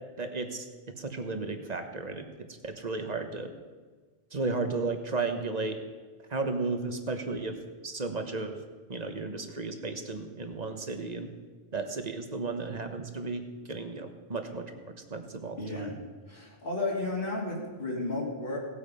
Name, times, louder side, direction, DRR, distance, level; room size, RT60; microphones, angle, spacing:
voice 1, 0.2-0.7 1.0-2.2 2.6-3.5 4.3-5.8 6.3-7.5 7.8-8.6 8.9-11.3 11.7-13.4 13.7-14.6 15.1-16.0, right 3 dB, 40° right, 6 dB, 1.3 m, -34 dB
voice 2, 15.6-16.0 16.3-18.6, left 2 dB, 55° left, -5 dB, 2.8 m, -33 dB
18.0 x 8.5 x 5.6 m, 1.4 s
omnidirectional pair, 1.1 m